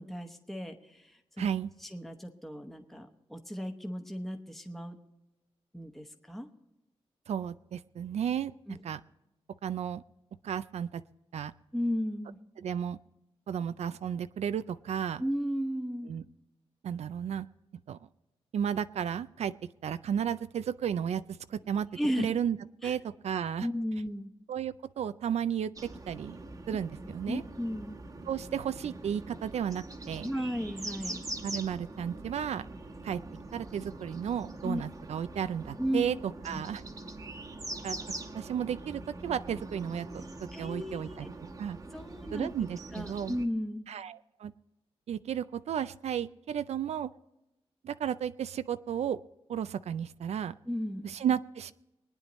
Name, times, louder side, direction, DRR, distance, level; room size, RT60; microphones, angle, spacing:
voice 1, 0.0-1.5 1.8-5.0 5.7-6.5 8.7-8.8 11.7-12.4 15.2-16.1 21.9-22.3 22.8-22.9 23.6-24.3 27.0-28.0 30.2-31.3 34.6-34.8 35.8-36.1 36.5-36.6 40.5-41.3 41.9-42.6 42.9-43.8 50.7-51.1, equal, ahead, 3 dB, 1.0 m, -35 dB
voice 2, 1.4-1.7 7.3-8.5 8.8-9.0 9.6-10.0 10.4-11.0 11.3-11.5 12.6-13.0 13.5-15.2 16.1-16.2 16.8-17.5 17.9-18.0 18.5-19.5 19.8-21.9 22.2-22.6 22.8-23.7 24.5-26.4 26.7-27.4 28.3-30.3 31.4-32.7 33.0-33.2 33.5-36.2 36.4-36.8 37.8-38.0 38.3-41.3 41.6-41.8 42.3-43.4 43.9-44.5 45.1-47.1 47.8-49.2 49.5-50.5 51.0-51.7, right 8 dB, 80° right, 13 dB, 0.4 m, -33 dB
sound 1, 25.8-43.5, right 2 dB, 30° right, 1.1 m, -43 dB
23.5 x 9.9 x 3.1 m, 0.94 s
wide cardioid pair, 135°, 11 cm